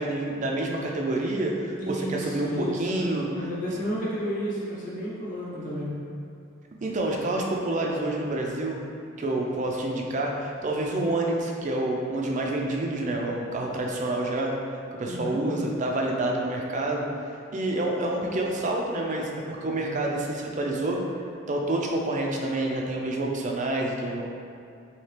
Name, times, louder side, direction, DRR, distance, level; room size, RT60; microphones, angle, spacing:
voice 1, 0.0-3.5 6.8-8.8 9.2-14.5 15.0-17.1 17.5-21.0 21.5-24.2, right 2 dB, 40° right, 0 dB, 0.4 m, -28 dB
voice 2, 1.8-5.9 15.0-15.5, equal, 40° left, -7 dB, 1.0 m, -32 dB
4.3 x 2.8 x 3.2 m, 2.4 s
head